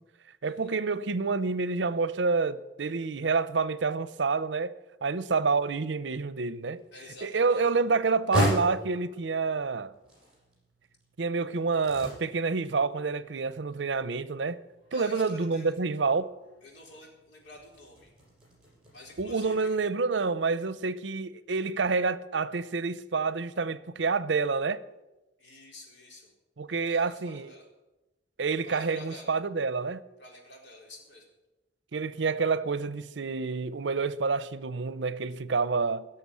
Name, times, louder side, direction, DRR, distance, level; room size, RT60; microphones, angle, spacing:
voice 1, 0.4-4.7 5.0-6.8 7.2-9.9 11.2-14.6 14.9-16.3 19.2-24.8 26.6-27.5 28.4-30.0 31.9-36.1, right 4 dB, 75° right, 0.6 m, -28 dB
sound 1, 6.5-19.8, equal, 5° right, 6.9 m, -37 dB
voice 2, 6.9-7.6 14.9-15.7 16.6-18.1 18.9-19.8 25.4-26.3 26.7-27.7 28.6-29.3 30.2-31.3, left 1 dB, 70° left, 4.3 m, -48 dB
17.0 x 6.8 x 9.6 m
head